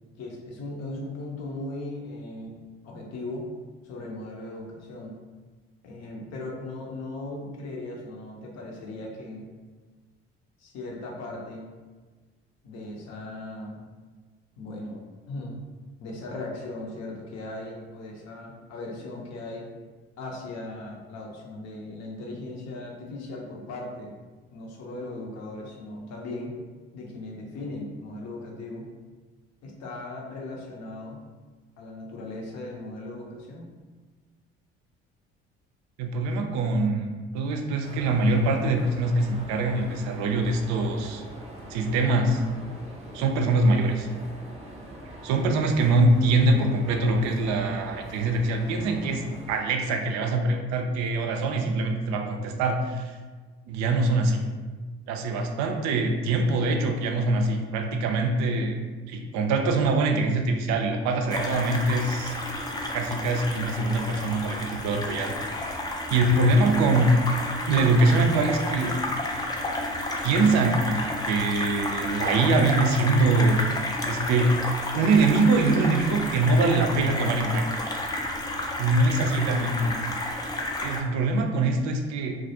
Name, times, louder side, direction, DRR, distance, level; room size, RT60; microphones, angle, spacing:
voice 1, 0.2-2.6 2.8-3.5 3.8-5.2 5.8-9.5 10.6-11.7 12.6-13.8 14.6-15.0 15.3-15.6 16.0-19.7 20.2-24.1 24.5-26.5 26.9-28.9 29.6-31.2 31.8-33.7, left 2 dB, 60° left, -1 dB, 0.6 m, -38 dB
voice 2, 36.0-41.2 41.7-42.4 43.1-44.1 45.2-53.1 53.7-54.5 55.1-58.8 59.1-62.3 62.9-65.3 66.1-67.1 67.7-69.0 70.2-70.8 71.3-73.6 74.1-74.6 74.9-77.7 78.8-80.0 80.8-82.4, right 2 dB, 65° right, 4 dB, 0.4 m, -23 dB
sound 1, 37.8-49.6, equal, 20° right, 0.7 m, -43 dB
sound 2, 61.3-81.0, left 1 dB, 15° left, 0.3 m, -31 dB
2.3 x 2.0 x 2.7 m, 1.4 s
hypercardioid pair, 55°, 30 cm